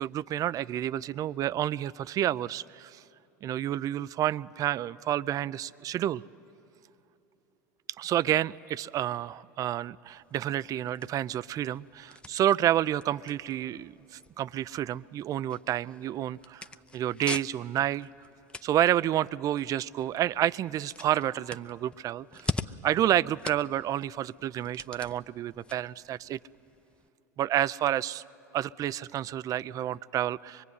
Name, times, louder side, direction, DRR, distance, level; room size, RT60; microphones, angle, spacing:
voice 1, 0.0-3.0 3.4-6.2 8.0-16.6 16.9-18.1 18.6-22.5 22.8-26.4 27.4-28.2 28.5-30.6, right 12 dB, 40° right, 18 dB, 0.5 m, -29 dB
sound 1, 10.1-27.1, left 3 dB, 10° left, 0.7 m, -43 dB
24.0 x 22.5 x 9.7 m, 2.9 s
hypercardioid pair, 95°, 9 cm